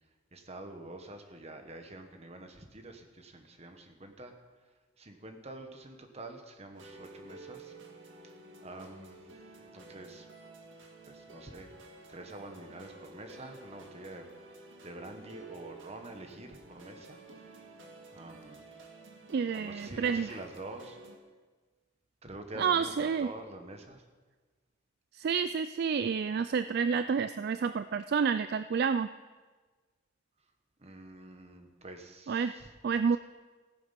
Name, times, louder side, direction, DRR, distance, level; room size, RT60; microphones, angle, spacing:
voice 1, 0.3-4.3 5.0-7.8 8.1-8.3 8.6-9.3 9.7-10.3 11.1-11.7 12.1-14.3 14.8-17.2 18.1-18.6 19.5-21.0 22.2-24.0 30.8-32.7, right 2 dB, 35° right, 5 dB, 1.4 m, -46 dB
sound 1, 6.7-21.2, right 2 dB, 80° right, 1.9 m, -52 dB
voice 2, 19.3-20.3 22.6-23.3 25.1-29.1 32.3-32.5 32.8-33.2, right 6 dB, 55° right, 12 dB, 0.3 m, -29 dB
16.0 x 9.5 x 5.8 m, 1.4 s
head